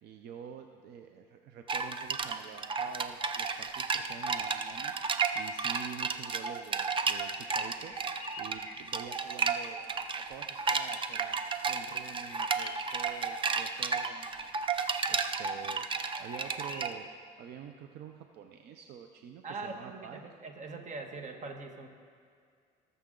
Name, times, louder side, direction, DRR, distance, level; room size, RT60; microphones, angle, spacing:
voice 1, 0.0-8.0 8.4-11.4 11.7-14.5 15.1-15.9 16.2-20.2, right 8 dB, 75° right, 5 dB, 0.6 m, -47 dB
sound 1, 1.7-16.9, right 5 dB, 30° right, 0.6 m, -33 dB
sound 2, 7.6-9.6 12.0-16.9, left 3 dB, 25° left, 1.7 m, -50 dB
voice 2, 19.4-21.9, right 3 dB, 45° right, 4 dB, 1.4 m, -42 dB
19.5 x 6.9 x 3.8 m, 2.2 s
cardioid pair, 110°, 17 cm